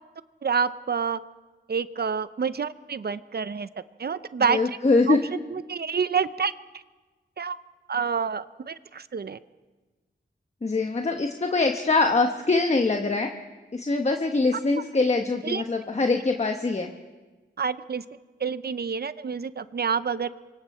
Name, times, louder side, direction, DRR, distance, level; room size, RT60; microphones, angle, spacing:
voice 1, 0.4-1.2 1.7-3.7 4.0-4.8 5.1-6.5 7.4-7.6 7.9-9.4 15.4-15.6 17.6-18.0 18.4-20.3, right 6 dB, 55° right, 14 dB, 0.7 m, -28 dB
voice 2, 4.5-5.2 10.6-13.3 13.7-16.9, left 3 dB, 35° left, 4 dB, 1.2 m, -23 dB
27.5 x 24.0 x 4.3 m, 1.3 s
wide cardioid pair, 90°, 20 cm